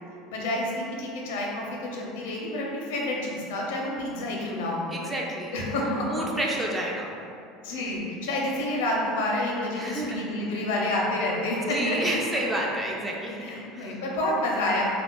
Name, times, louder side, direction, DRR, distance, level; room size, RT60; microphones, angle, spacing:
voice 1, 0.3-4.8 5.5-6.7 7.6-12.2 13.4-15.0, left 1 dB, 90° left, -2 dB, 0.6 m, -29 dB
voice 2, 4.9-7.2 7.9-8.0 9.8-10.3 11.5-14.0, right 1 dB, 15° right, -2 dB, 0.4 m, -30 dB
2.3 x 2.1 x 3.6 m, 2.5 s
supercardioid pair, 130°, 0 cm